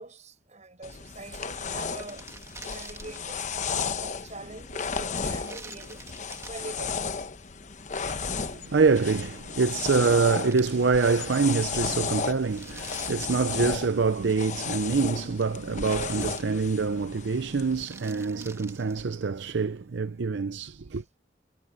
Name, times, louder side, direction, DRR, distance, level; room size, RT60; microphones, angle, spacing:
voice 1, 0.0-2.3 2.6-7.0 20.9-21.0, right 2 dB, 40° right, 5.4 m, -44 dB
sound 1, 0.8-17.8, left 5 dB, 40° left, 1.0 m, -34 dB
sound 2, 1.6-3.5 5.1-6.9 9.6-9.7 9.9-11.3 11.6-11.7 12.3-14.0 15.0-15.6 15.8-17.0 17.5-19.2, right 3 dB, 15° right, 1.5 m, -48 dB
voice 2, 8.0-21.0, right 4 dB, 80° right, 0.6 m, -25 dB
head